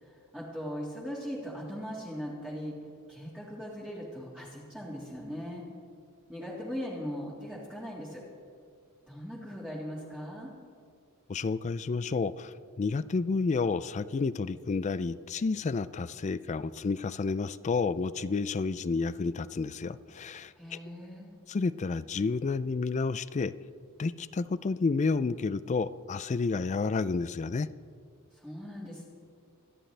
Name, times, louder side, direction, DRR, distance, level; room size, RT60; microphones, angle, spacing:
voice 1, 0.0-2.7 3.1-5.6 6.3-8.2 9.1-10.5 20.6-21.3 28.3-29.1, equal, 5° right, -7 dB, 2.0 m, -39 dB
voice 2, 11.3-20.8 21.5-23.5 24.0-27.7, left 4 dB, 35° left, 16 dB, 0.3 m, -30 dB
25.0 x 10.0 x 3.3 m, 2.2 s
head